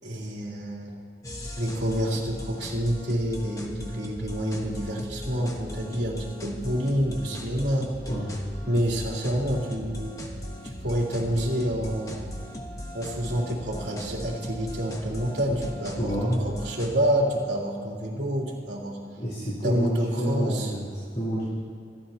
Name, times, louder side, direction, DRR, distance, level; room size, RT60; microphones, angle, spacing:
voice 1, 0.0-0.9 1.6-7.9 8.6-10.1 10.6-12.3 12.9-19.0 19.6-20.7, equal, 75° right, -4 dB, 3.4 m, -28 dB
sound 1, 1.2-17.0, left 1 dB, 20° left, 1.3 m, -38 dB
voice 2, 15.9-16.4 19.2-21.4, equal, 40° left, -8 dB, 4.1 m, -28 dB
26.5 x 11.0 x 3.0 m, 2.4 s
head